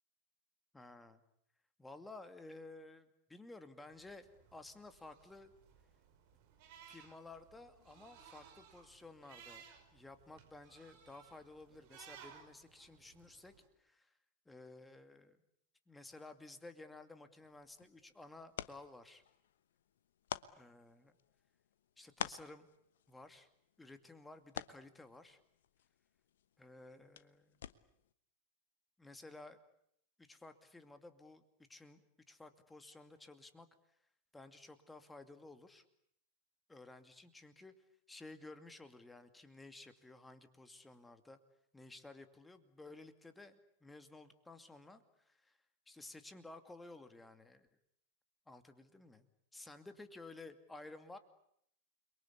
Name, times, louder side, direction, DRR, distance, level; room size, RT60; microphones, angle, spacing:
voice 1, 0.7-1.2 1.8-5.5 6.9-9.6 9.9-13.5 13.8-14.1 14.5-15.4 15.9-19.2 20.5-21.1 22.0-22.7 23.1-23.5 23.8-25.4 26.6-27.6 29.0-29.6 30.2-31.4 31.7-33.7 34.3-35.8 36.7-37.7 38.1-41.4 41.7-45.6 45.9-47.7 48.5-49.3 49.5-51.2, left 2 dB, 10° left, 9 dB, 2.5 m, -54 dB
sound 1, 3.9-13.7, right 7 dB, 45° right, 5.4 m, -60 dB
sound 2, 17.4-28.1, left 10 dB, 60° left, 1.1 m, -50 dB
29.5 x 23.0 x 8.5 m, 0.73 s
figure-of-eight pair, 90°, 0 cm